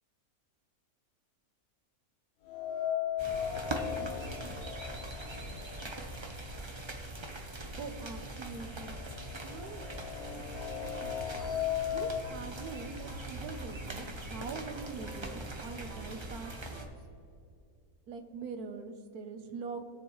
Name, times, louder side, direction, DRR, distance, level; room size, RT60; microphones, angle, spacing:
sound 1, 2.5-6.5 6.9-7.0 7.9-8.0 8.4-12.3, left 10 dB, 75° left, 1.1 m, -37 dB
sound 2, 3.2-16.9, right 1 dB, 25° right, 0.6 m, -42 dB
voice 1, 7.8-8.9 9.4-9.9 11.0-11.2 11.9-16.9 18.1-19.9, right 5 dB, 90° right, 7 dB, 1.3 m, -43 dB
sound 3, 10.1-16.9, right 2 dB, 50° right, 1.6 m, -50 dB
19.5 x 7.1 x 3.1 m, 2.4 s
omnidirectional pair, 1.6 m